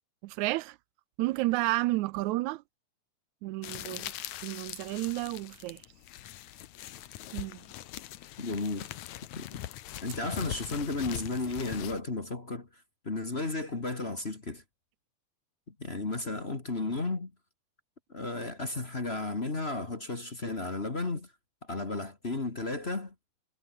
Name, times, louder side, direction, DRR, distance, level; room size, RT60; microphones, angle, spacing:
voice 1, 0.2-0.8 1.2-2.6 3.4-4.1 4.4-5.8 7.3-7.6, right 19 dB, 80° right, 1.9 m, -31 dB
sound 1, 3.6-12.0, left 14 dB, 75° left, 2.4 m, -42 dB
voice 2, 8.4-8.9 9.4-9.5 10.0-12.7 13.0-14.6 15.8-17.3 18.1-21.3 21.6-23.1, left 3 dB, 25° left, 1.8 m, -33 dB
omnidirectional pair, 3.4 m